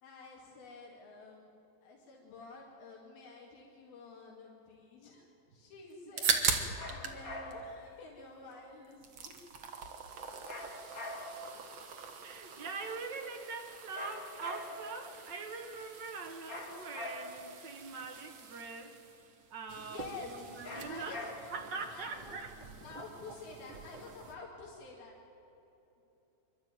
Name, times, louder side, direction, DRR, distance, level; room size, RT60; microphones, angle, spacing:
voice 1, 0.0-1.5 1.8-9.3 9.9-10.0 19.8-20.3 20.9-21.3 21.9-25.1, left 3 dB, 85° left, -2 dB, 4.0 m, -50 dB
sound 1, 5.9-7.2 7.5-8.5 8.8-24.3, right 6 dB, 50° right, 1.5 m, -41 dB
sound 2, 6.8-7.8 10.5-11.6 13.9-15.0 16.5-17.5 20.6-21.7, left 2 dB, 40° left, 1.3 m, -44 dB
voice 2, 12.2-19.0 19.5-21.1 21.5-22.5, right 4 dB, 75° right, 3 dB, 1.0 m, -43 dB
26.0 x 12.5 x 9.2 m, 3.0 s
omnidirectional pair, 4.2 m